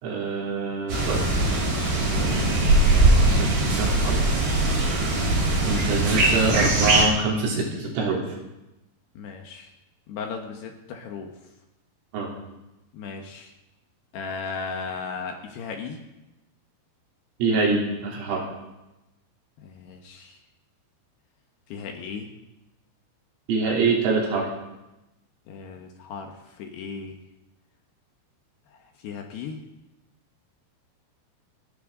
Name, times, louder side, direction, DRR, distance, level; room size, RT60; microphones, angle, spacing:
voice 1, 0.0-1.2 2.1-2.7 3.1-4.2 4.7-5.1 5.7-8.2 12.1-12.3 17.4-18.4 23.5-24.5, right 4 dB, 80° right, -3 dB, 5.9 m, -25 dB
sound 1, 0.9-7.0, right 2 dB, 55° right, 5.5 m, -21 dB
voice 2, 9.2-9.7 10.1-11.3 12.9-13.5 14.1-16.0 19.6-20.4 21.7-22.3 25.5-27.2 28.7-29.6, left 5 dB, 70° left, 3 dB, 2.9 m, -36 dB
30.0 x 11.0 x 3.8 m, 0.98 s
omnidirectional pair, 5.8 m